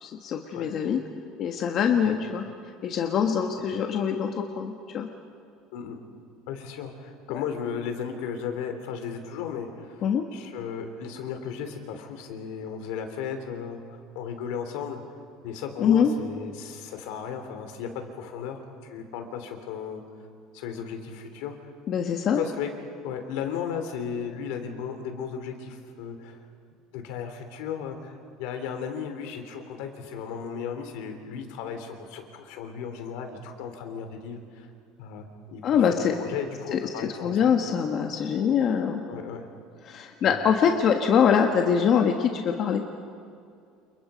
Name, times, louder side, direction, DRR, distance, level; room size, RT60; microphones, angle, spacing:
voice 1, 0.0-1.0 1.4-2.4 2.8-5.1 10.0-10.2 15.8-16.1 21.9-22.4 35.6-36.1 36.7-39.0 39.9-42.8, left 7 dB, 35° left, 3 dB, 1.3 m, -24 dB
voice 2, 6.5-10.0 10.3-15.2 15.4-20.0 20.5-21.5 22.4-22.7 23.0-26.4 26.9-34.7 35.0-35.3 35.5-37.5 39.1-39.5 40.2-40.4, left 7 dB, 70° left, 6 dB, 3.6 m, -35 dB
29.5 x 29.0 x 5.2 m, 2.4 s
cardioid pair, 175°, 0 cm